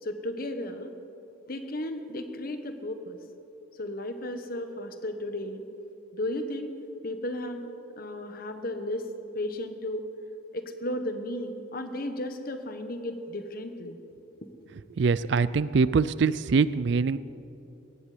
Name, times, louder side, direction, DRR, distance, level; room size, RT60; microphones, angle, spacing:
voice 1, 0.0-0.9 1.5-3.2 3.8-5.6 6.1-6.7 7.0-7.7 8.0-9.1 9.3-10.0 10.5-14.0, left 1 dB, 45° left, 8 dB, 1.2 m, -34 dB
voice 2, 15.0-17.2, right 5 dB, 55° right, 17 dB, 0.4 m, -23 dB
18.5 x 15.5 x 5.1 m, 3.0 s
head